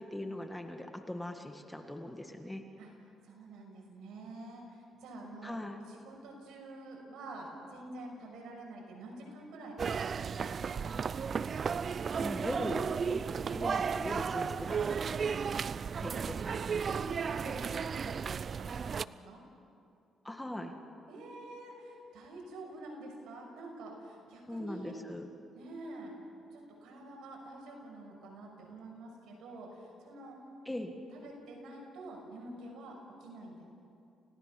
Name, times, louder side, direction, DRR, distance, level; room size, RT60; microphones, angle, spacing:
voice 1, 0.0-2.6 5.4-5.8 12.2-12.8 13.1-13.2 13.5-15.4 16.0-16.6 20.2-20.7 24.5-25.3 30.7-30.9, left 1 dB, 10° left, 5 dB, 1.9 m, -40 dB
voice 2, 3.2-5.6 5.9-10.8 16.8-17.7 18.0-18.1 18.6-19.4 21.1-24.9 25.5-26.1 26.5-30.4 31.1-33.6, right 2 dB, 80° right, 0 dB, 6.3 m, -47 dB
sound 1, 9.8-19.1, right 6 dB, 45° right, 0.4 m, -34 dB
29.5 x 17.0 x 6.1 m, 2.6 s
cardioid pair, 90°, 0 cm